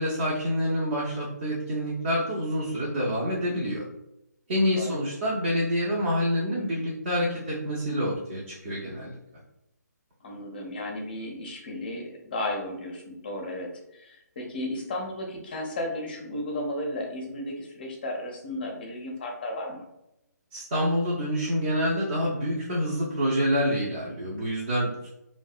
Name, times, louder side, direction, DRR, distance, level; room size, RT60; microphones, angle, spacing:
voice 1, 0.0-3.8 4.5-9.2 20.5-25.1, equal, 30° right, -6 dB, 0.5 m, -27 dB
voice 2, 10.2-19.8, left 1 dB, 30° left, 1 dB, 0.5 m, -34 dB
2.6 x 2.1 x 2.3 m, 0.87 s
figure-of-eight pair, 145°, 10 cm